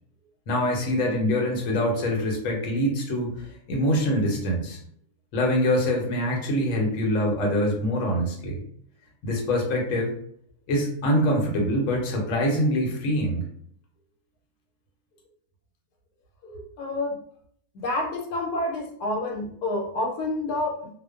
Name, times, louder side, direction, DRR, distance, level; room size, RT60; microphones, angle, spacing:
voice 1, 0.5-4.8 5.3-8.6 9.2-10.1 10.7-13.4, equal, 65° left, 0 dB, 0.9 m, -24 dB
voice 2, 16.4-17.2 17.7-20.9, left 2 dB, 85° left, 1 dB, 1.1 m, -29 dB
2.5 x 2.1 x 2.3 m, 0.65 s
omnidirectional pair, 1.7 m